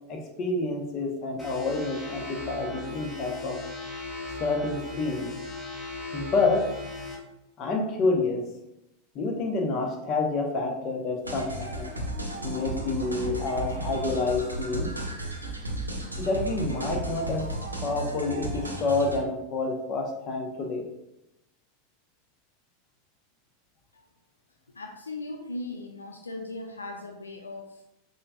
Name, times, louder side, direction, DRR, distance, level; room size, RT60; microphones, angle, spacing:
voice 1, 0.1-3.6 4.4-5.3 6.1-6.8 7.6-8.4 9.1-11.9 12.4-14.9 16.2-17.4 17.8-20.8, left 3 dB, 35° left, 2 dB, 0.9 m, -28 dB
sound 1, 1.4-7.1, left 3 dB, 20° left, 1.6 m, -37 dB
sound 2, 11.2-19.2, right 1 dB, 85° right, 0.7 m, -34 dB
voice 2, 24.7-27.8, left 2 dB, 80° left, 4 dB, 0.3 m, -38 dB
5.5 x 4.0 x 2.3 m, 0.88 s
figure-of-eight pair, 85°, 0 cm